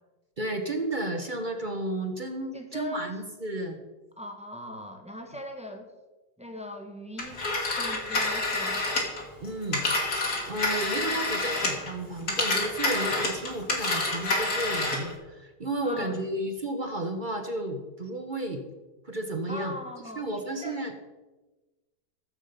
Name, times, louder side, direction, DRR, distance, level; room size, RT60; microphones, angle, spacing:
voice 1, 0.4-3.8 9.4-10.0 10.5-18.6 19.0-19.8 20.2-20.9, right 1 dB, 35° right, 5 dB, 0.9 m, -32 dB
voice 2, 2.5-3.1 4.2-5.9 6.4-7.4 7.8-8.8 15.8-16.2 19.5-20.8, left 1 dB, 5° right, 4 dB, 0.9 m, -40 dB
Telephone, 7.2-11.9 12.2-15.1, left 2 dB, 55° left, 2.9 m, -28 dB
14.5 x 7.4 x 5.2 m, 1.1 s
omnidirectional pair, 2.0 m